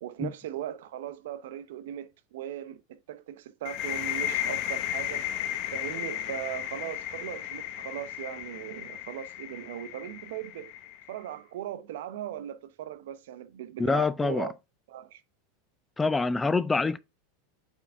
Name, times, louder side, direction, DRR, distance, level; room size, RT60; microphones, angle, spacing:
voice 1, 0.0-5.2 5.7-10.7 11.1-14.5 14.9-15.2, right 11 dB, 75° right, 0.7 m, -38 dB
sound 1, 3.6-11.2, left 11 dB, 50° left, 0.8 m, -34 dB
voice 2, 13.8-14.5 16.0-17.0, left 3 dB, 10° left, 0.3 m, -25 dB
8.4 x 3.7 x 3.4 m
supercardioid pair, 145°, 0 cm